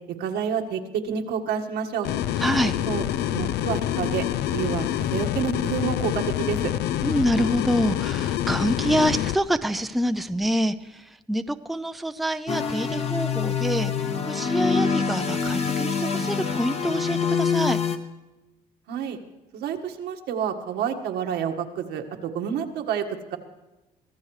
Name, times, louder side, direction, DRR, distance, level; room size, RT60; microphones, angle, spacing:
voice 1, 0.2-2.1 2.9-3.0 3.3-4.2 4.5-6.7 18.9-19.2 19.5-23.4, right 8 dB, 80° right, 4 dB, 1.7 m, -29 dB
sound 1, 2.0-9.3, left 11 dB, 75° left, 0.5 m, -26 dB
voice 2, 2.4-2.8 7.0-17.8, equal, ahead, 9 dB, 0.5 m, -26 dB
sound 2, 12.5-18.0, left 6 dB, 35° left, 1.3 m, -25 dB
24.0 x 15.5 x 3.3 m, 1.1 s
cardioid pair, 110°, 17 cm